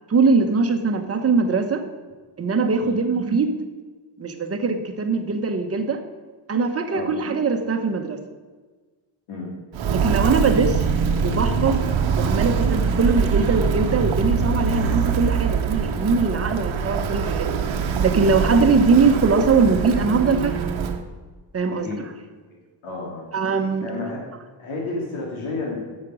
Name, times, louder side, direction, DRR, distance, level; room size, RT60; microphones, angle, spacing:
voice 1, 0.1-1.8 2.4-3.6 4.2-6.0 6.5-8.2 9.9-10.9 11.2-11.8 12.2-17.5 18.0-20.7 21.5-22.1 23.3-23.9, right 4 dB, 30° right, 7 dB, 1.0 m, -21 dB
Walk footsteps, 9.7-21.0, right 6 dB, 75° right, 1.0 m, -23 dB
voice 2, 22.8-23.2 23.8-24.3 24.6-25.8, left 3 dB, 85° left, -3 dB, 2.8 m, -31 dB
9.8 x 7.5 x 6.2 m, 1.4 s
cardioid pair, 150°, 47 cm